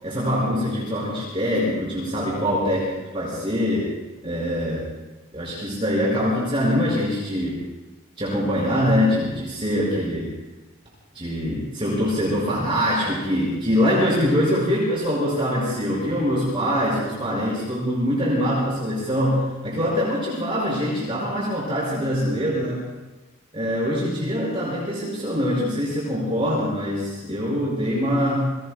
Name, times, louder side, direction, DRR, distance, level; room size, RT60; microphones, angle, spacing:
voice 1, 0.0-3.9 4.2-4.8 5.3-7.6 8.2-10.3 11.1-22.8 23.5-28.5, equal, 25° right, -6 dB, 5.5 m, -23 dB
29.0 x 22.5 x 2.2 m, 1.2 s
head